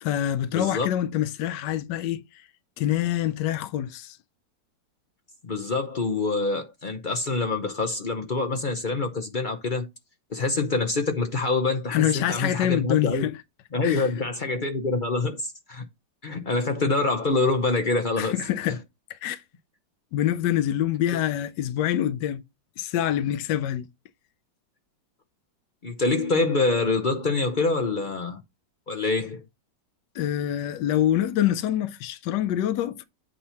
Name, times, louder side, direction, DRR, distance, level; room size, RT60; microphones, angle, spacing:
voice 1, 0.0-2.2 2.8-4.2 11.9-13.4 13.8-14.1 18.2-18.8 19.1-19.4 20.1-22.4 22.8-23.9 30.1-33.0, left 11 dB, 80° left, 1.3 m, -25 dB
voice 2, 0.5-0.9 5.4-9.9 10.3-13.3 13.7-15.8 16.2-18.4 25.8-28.4 28.9-29.4, left 3 dB, 50° left, 0.6 m, -25 dB
8.5 x 2.9 x 5.5 m
omnidirectional pair, 1.9 m